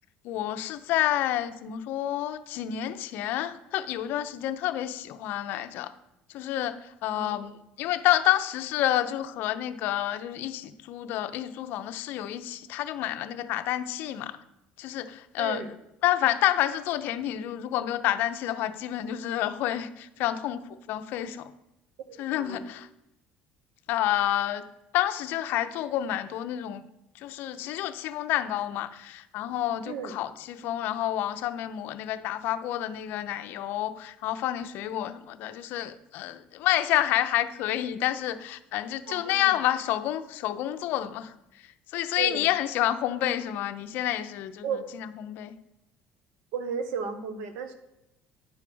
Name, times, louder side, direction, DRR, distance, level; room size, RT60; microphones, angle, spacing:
voice 1, 0.2-5.9 6.3-7.5 7.8-14.4 14.8-15.6 16.0-21.5 22.2-22.9 23.9-24.6 24.9-26.9 27.1-41.3 41.9-44.7 44.9-45.5, left 13 dB, 70° left, 10 dB, 0.6 m, -29 dB
voice 2, 15.4-15.7 22.1-22.7 29.8-30.2 39.1-39.5 42.2-42.5 44.6-44.9 46.5-47.7, right 6 dB, 85° right, 9 dB, 1.0 m, -34 dB
9.9 x 4.8 x 6.1 m, 0.90 s
cardioid pair, 130°, 4 cm